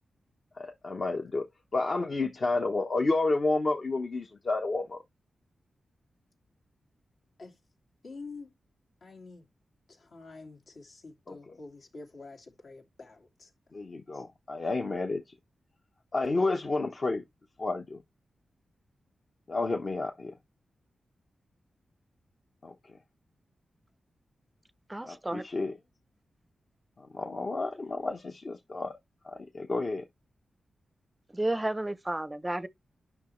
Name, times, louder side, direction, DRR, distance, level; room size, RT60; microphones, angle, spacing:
voice 1, 0.6-5.0 11.3-11.4 13.7-15.2 16.1-17.2 17.6-18.0 19.5-20.3 22.6-22.7 25.0-25.8 27.0-29.0 29.2-30.0, left 3 dB, 45° left, 1.1 m, -30 dB
voice 2, 8.0-8.5 9.0-9.5 9.9-13.5, left 3 dB, 70° left, 2.4 m, -47 dB
voice 3, 24.9-25.4 31.3-32.7, right 1 dB, 15° right, 0.6 m, -32 dB
9.4 x 5.8 x 3.2 m
wide cardioid pair, 90°, 0 cm